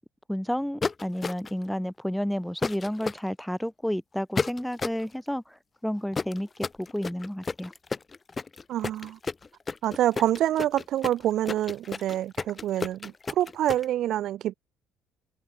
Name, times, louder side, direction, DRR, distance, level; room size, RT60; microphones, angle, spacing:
voice 1, 0.3-5.4 5.8-7.7, equal, 5° left, 1.3 m, -31 dB
sound 1, 0.8-1.6 2.6-3.2 4.4-5.0 6.1-13.8, left 4 dB, 30° left, 1.9 m, -32 dB
voice 2, 8.7-9.2 9.8-14.5, right 12 dB, 60° right, 1.5 m, -26 dB
hypercardioid pair, 50°, 0 cm